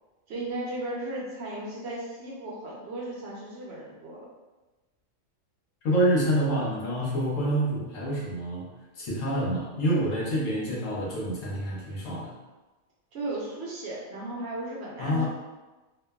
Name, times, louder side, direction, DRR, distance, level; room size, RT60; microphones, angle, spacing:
voice 1, 0.3-4.3 13.1-15.3, right 2 dB, 65° right, -4 dB, 0.9 m, -35 dB
voice 2, 5.8-8.7 8.9-12.3 15.0-15.3, equal, 90° left, -5 dB, 1.1 m, -27 dB
3.0 x 2.1 x 2.2 m, 1.1 s
omnidirectional pair, 1.3 m